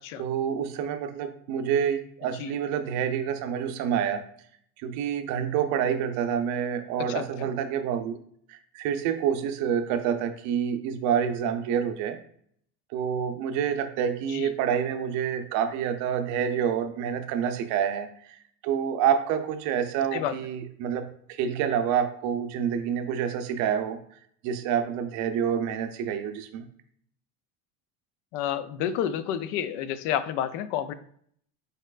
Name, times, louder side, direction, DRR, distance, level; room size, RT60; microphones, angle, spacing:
voice 1, 0.2-4.2 4.8-8.1 8.5-12.2 12.9-24.0 24.4-26.7, right 8 dB, 50° right, 8 dB, 0.5 m, -28 dB
voice 2, 7.1-7.5 14.3-14.5 20.1-20.4 28.3-30.9, left 10 dB, 75° left, 13 dB, 0.5 m, -30 dB
4.9 x 4.3 x 2.3 m, 0.64 s
cardioid pair, 160°, 36 cm